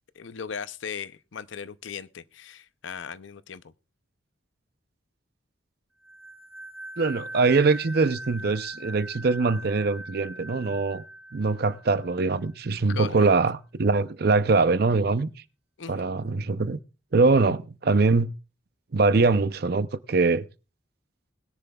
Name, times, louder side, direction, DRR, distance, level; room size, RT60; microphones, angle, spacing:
voice 1, 0.1-3.7 12.9-13.3 15.8-16.1, left 6 dB, 70° left, 0.6 m, -38 dB
sound 1, 6.0-12.5, right 1 dB, 5° right, 2.9 m, -42 dB
voice 2, 7.0-11.0 11.3-15.3 15.9-16.8 17.1-18.3 18.9-20.4, right 3 dB, 50° right, 0.6 m, -23 dB
21.0 x 10.0 x 2.3 m
head